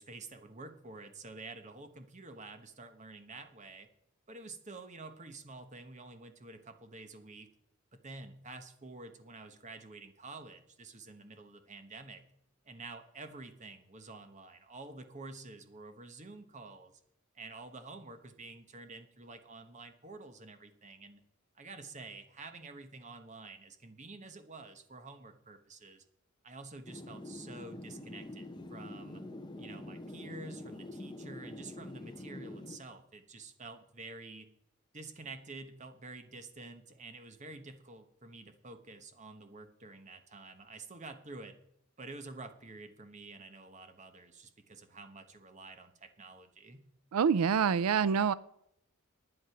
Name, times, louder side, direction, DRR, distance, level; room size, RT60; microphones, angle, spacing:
voice 1, 0.0-3.9 4.3-7.5 7.9-12.2 12.6-16.9 17.3-21.2 21.5-26.0 26.4-29.2 29.6-34.5 34.9-41.5 42.0-46.9, right 3 dB, 35° right, 8 dB, 1.1 m, -49 dB
sound 1, 26.9-32.8, left 1 dB, 20° left, 0.8 m, -45 dB
voice 2, 47.1-48.3, right 6 dB, 85° right, 18 dB, 0.4 m, -26 dB
11.0 x 9.7 x 5.9 m, 0.73 s
head